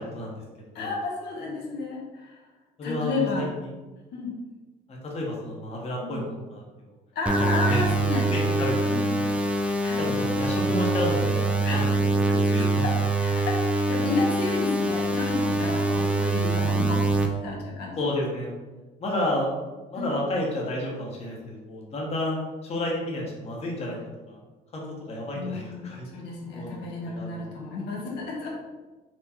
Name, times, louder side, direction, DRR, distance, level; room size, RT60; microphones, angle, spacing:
voice 1, 0.0-0.9 2.8-3.7 4.9-6.6 7.4-7.9 8.3-9.3 10.0-12.8 14.0-14.1 18.0-18.6 19.0-19.5 19.9-24.0 24.3-24.4 24.7-26.2 26.5-27.4, left 1 dB, 40° left, -2 dB, 1.1 m, -31 dB
voice 2, 0.7-2.4 2.8-3.5 4.1-4.4 6.0-6.2 7.1-8.6 8.9-9.1 9.8-10.1 11.6-12.0 12.2-18.0 19.9-20.1 25.3-28.6, left 3 dB, 75° left, -3 dB, 1.2 m, -31 dB
sound 1, 7.3-17.3, right 2 dB, 5° right, 0.5 m, -24 dB
4.4 x 2.4 x 4.2 m, 1.2 s
cardioid pair, 110°, 17 cm